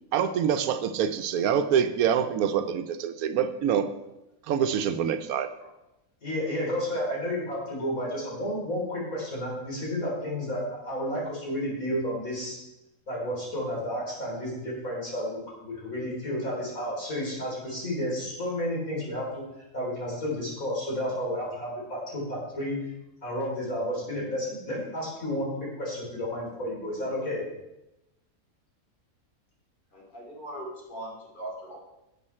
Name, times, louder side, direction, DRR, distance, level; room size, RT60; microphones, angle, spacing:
voice 1, 0.1-3.9 4.5-5.5, right 8 dB, 80° right, 11 dB, 1.1 m, -25 dB
voice 2, 6.2-12.6 13.1-19.4 19.7-22.8 23.2-27.4, equal, 70° left, -4 dB, 4.0 m, -31 dB
voice 3, 29.9-31.8, right 1 dB, 35° left, -3 dB, 2.8 m, -40 dB
11.0 x 7.5 x 4.3 m, 0.95 s
omnidirectional pair, 1.5 m